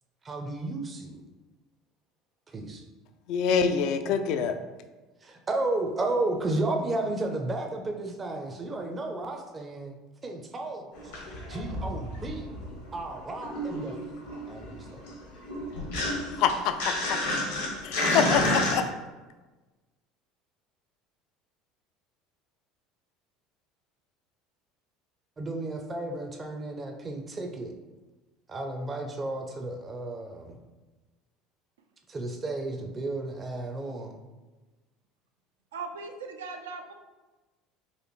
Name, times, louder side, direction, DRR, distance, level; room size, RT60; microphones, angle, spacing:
voice 1, 0.2-1.2 2.5-2.8 5.2-10.0 10.2-11.1 11.5-12.5 12.9-14.0 14.5-15.1 25.4-27.7 28.5-30.6 32.1-34.2, right 2 dB, 30° right, 0.5 m, -33 dB
voice 2, 3.3-4.6 16.4-17.2 17.8-18.9, left 7 dB, 60° left, 0.3 m, -26 dB
sound 1, 10.9-12.9 13.1-18.8, left 1 dB, 80° left, 1.1 m, -30 dB
voice 3, 35.7-37.0, right 4 dB, 80° right, 0.4 m, -38 dB
4.2 x 2.5 x 3.0 m
hypercardioid pair, 70°, 0 cm